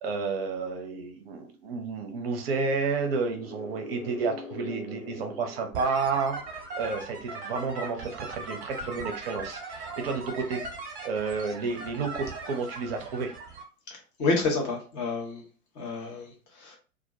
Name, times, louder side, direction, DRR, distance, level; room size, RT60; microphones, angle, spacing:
voice 1, 0.0-6.4 6.8-10.6 11.0-13.3, right 4 dB, 40° right, 5 dB, 0.6 m, -31 dB
sound 1, 3.0-6.8, left 2 dB, 55° left, 0.6 m, -43 dB
sound 2, 5.7-13.6, right 3 dB, 20° right, 1.0 m, -39 dB
voice 2, 13.9-15.4 15.7-16.8, left 3 dB, 15° left, 0 dB, 0.5 m, -29 dB
2.3 x 2.1 x 2.7 m, 0.36 s
figure-of-eight pair, 105°, 44 cm